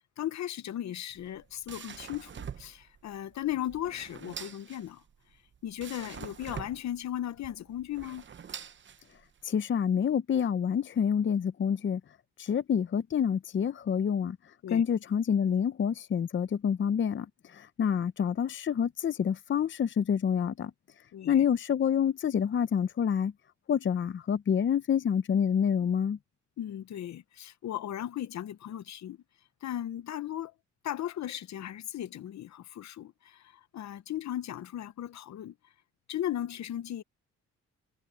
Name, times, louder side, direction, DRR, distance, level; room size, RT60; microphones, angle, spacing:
voice 1, 0.2-5.0 5.6-8.2 14.6-14.8 21.1-21.4 26.6-29.2 29.6-30.5 30.8-35.5 36.1-37.0, left 12 dB, 65° left, 1.1 m, -36 dB
sound 1, 1.1-9.4, right 7 dB, 40° right, 0.9 m, -45 dB
voice 2, 9.4-12.0 12.4-14.4 14.7-20.7 21.3-23.3 23.7-26.2, left 8 dB, 40° left, 0.8 m, -27 dB
cardioid pair, 90°, 30 cm